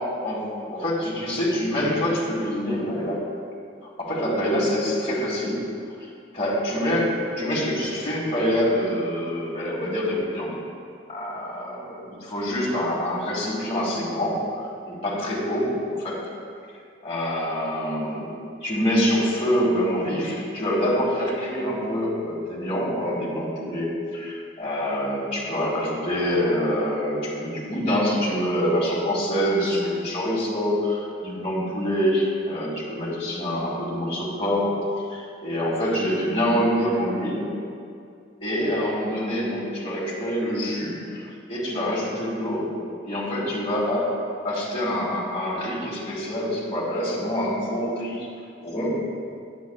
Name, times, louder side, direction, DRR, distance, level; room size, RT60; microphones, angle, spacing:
voice 1, 0.0-3.2 3.8-5.6 6.0-6.1 6.3-10.6 11.1-16.2 17.0-18.3 18.6-34.8 35.1-37.5 38.4-42.7 43.0-44.1 44.4-48.3 48.6-48.9, equal, 35° left, -6 dB, 1.7 m, -26 dB
9.3 x 7.6 x 2.3 m, 2.4 s
head